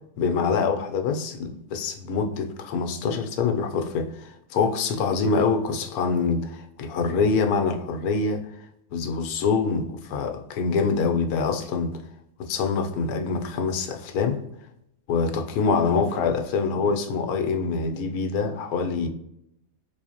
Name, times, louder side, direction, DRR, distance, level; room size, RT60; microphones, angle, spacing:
voice 1, 0.2-8.4 8.9-12.0 12.4-14.4 15.1-19.1, left 5 dB, 80° left, 1.1 m, -25 dB
3.8 x 3.1 x 2.8 m
omnidirectional pair, 1.6 m